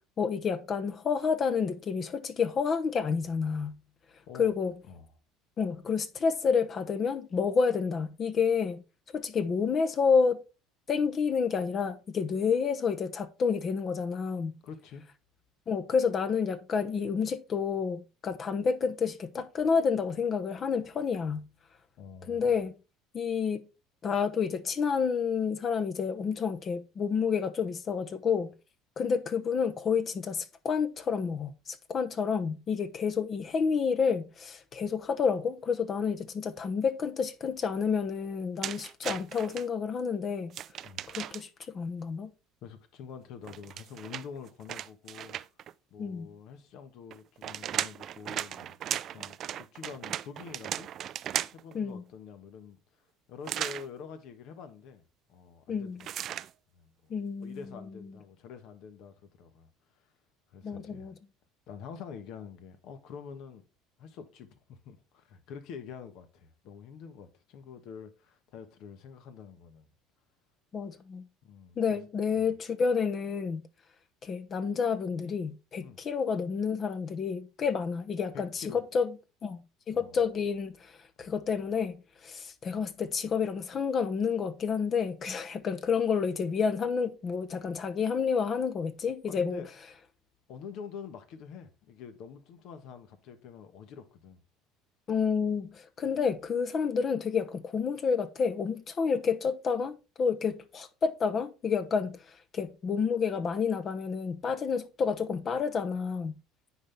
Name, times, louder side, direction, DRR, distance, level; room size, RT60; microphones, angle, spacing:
voice 1, 0.2-3.8 4.4-4.7 5.6-8.8 9.1-10.4 10.9-14.6 15.7-21.5 22.3-22.7 23.1-23.6 24.0-28.5 29.0-40.5 41.1-42.3 46.0-46.3 51.7-52.0 55.7-56.0 57.1-57.6 60.6-61.1 70.7-71.2 71.8-73.6 74.2-79.1 79.4-80.9 81.2-89.6 95.1-102.2 102.5-106.4, left 6 dB, 35° left, 1.0 m, -29 dB
voice 2, 14.6-15.1 22.0-22.5 40.8-41.0 42.6-45.4 45.9-50.9 51.5-52.8 53.3-55.0 55.3-56.1 56.7-57.1 57.4-59.7 60.0-60.1 60.5-61.1 61.7-63.6 64.0-69.9 71.4-72.0 72.4-72.5 75.8-76.0 78.3-78.8 79.9-80.2 89.2-89.7 90.5-94.4, left 6 dB, 65° left, 1.4 m, -46 dB
sound 1, 38.6-39.6 40.5-41.6 43.4-45.7 47.1-51.7 53.4-53.9 56.0-56.5, right 11 dB, 50° right, 0.3 m, -36 dB
9.8 x 4.1 x 3.4 m
supercardioid pair, 110°, 0 cm